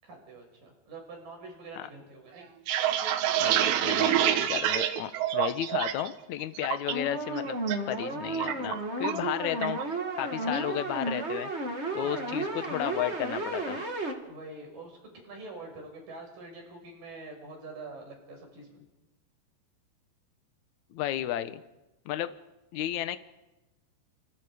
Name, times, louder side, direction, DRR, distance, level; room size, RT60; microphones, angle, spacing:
voice 1, 0.0-2.5 6.6-6.7 10.4-10.6 12.0-12.4 14.2-15.0 15.2-18.8, right 3 dB, 50° right, 2 dB, 7.9 m, -45 dB
sound 1, 2.4-6.1 6.4-6.9 7.3-7.8 8.0-9.3 9.6-9.9 10.2-10.7, right 11 dB, 80° right, 3.4 m, -27 dB
voice 2, 3.4-7.6 7.9-11.5 11.9-13.8 20.9-21.6 22.0-22.3 22.7-23.2, left 12 dB, 75° left, 10 dB, 1.8 m, -33 dB
sound 2, 6.9-14.1, right 2 dB, 25° right, 1.7 m, -33 dB
29.5 x 28.0 x 5.1 m, 1.0 s
omnidirectional pair, 5.0 m